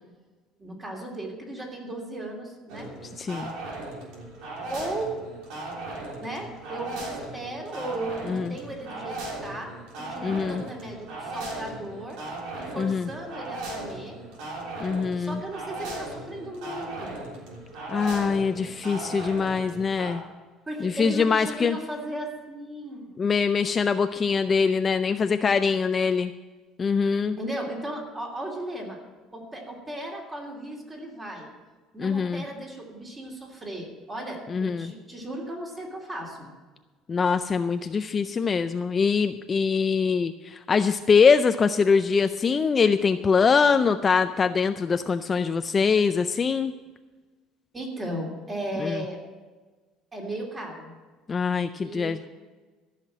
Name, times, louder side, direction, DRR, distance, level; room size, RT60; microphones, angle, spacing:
voice 1, 0.6-2.9 4.7-5.2 6.2-12.2 12.6-14.2 15.2-17.2 20.7-23.1 27.4-29.0 29.3-31.5 31.9-36.5 47.7-49.2 50.1-50.9 51.8-52.3, right 1 dB, 20° right, 0 dB, 2.9 m, -36 dB
sound 1, 2.7-20.2, right 2 dB, 80° right, 3.4 m, -37 dB
voice 2, 3.2-3.5 8.3-8.5 10.2-10.6 12.8-13.1 14.8-15.4 17.9-20.2 20.8-21.8 23.2-26.3 26.8-27.4 32.0-32.4 34.5-34.9 37.1-46.7 48.8-49.0 51.3-52.2, left 5 dB, 25° left, 9 dB, 0.4 m, -23 dB
13.5 x 5.9 x 8.6 m, 1.3 s
cardioid pair, 130°, 0 cm